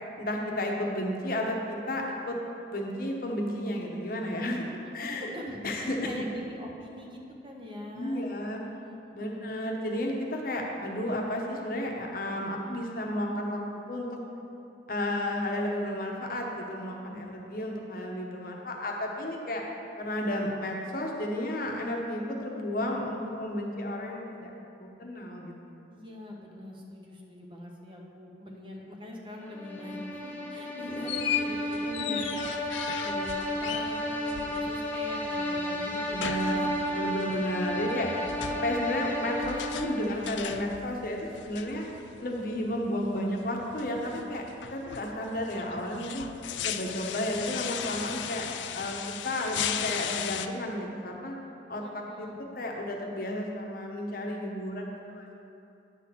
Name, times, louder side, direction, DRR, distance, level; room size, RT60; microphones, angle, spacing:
voice 1, 0.2-2.4 2.7-4.6 4.9-5.3 5.6-6.1 7.9-8.6 9.1-13.6 13.9-14.1 14.9-19.6 20.0-24.5 24.8-25.5 32.1-32.4 36.1-36.5 36.9-38.1 38.5-41.8 42.2-44.4 44.7-46.2 46.6-48.5 48.7-51.4 51.7-52.3 52.5-55.3, left 1 dB, 50° left, 0 dB, 0.9 m, -32 dB
voice 2, 4.8-9.4 17.0-17.2 25.9-36.7 51.8-52.5, left 1 dB, 25° right, -1 dB, 0.8 m, -43 dB
sound 1, 29.5-40.5, left 1 dB, 10° left, 0.9 m, -33 dB
sound 2, 30.9-50.5, left 9 dB, 80° left, 0.4 m, -37 dB
9.2 x 4.2 x 6.8 m, 2.7 s
head